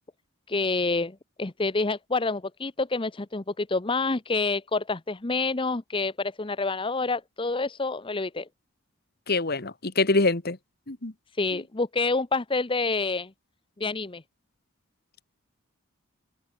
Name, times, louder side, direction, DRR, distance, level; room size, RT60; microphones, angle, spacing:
voice 1, 0.5-8.5 11.4-13.3 13.8-14.2, left 3 dB, 25° left, 0.8 m, -28 dB
voice 2, 9.3-10.6 10.9-11.1 11.5-11.6, left 3 dB, 50° left, 1.7 m, -25 dB
open air
head